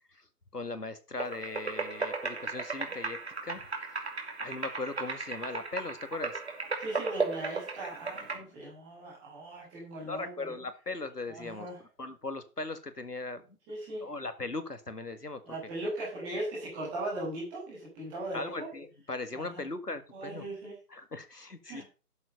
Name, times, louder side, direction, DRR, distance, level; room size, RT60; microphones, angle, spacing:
voice 1, 0.5-3.6 4.4-6.4 8.3-8.5 10.0-11.7 12.0-13.4 14.0-15.4 16.2-16.3 18.3-20.5 20.9-21.8, left 3 dB, 85° left, 11 dB, 2.0 m, -39 dB
sound 1, 1.2-8.4, right 4 dB, 45° right, 2.5 m, -36 dB
voice 2, 6.8-10.5 11.3-11.8 13.7-14.1 15.4-18.7 19.3-19.6 20.1-20.8 21.6-21.8, right 1 dB, ahead, -10 dB, 1.3 m, -38 dB
12.0 x 7.4 x 5.3 m, 0.34 s
figure-of-eight pair, 155°, 46 cm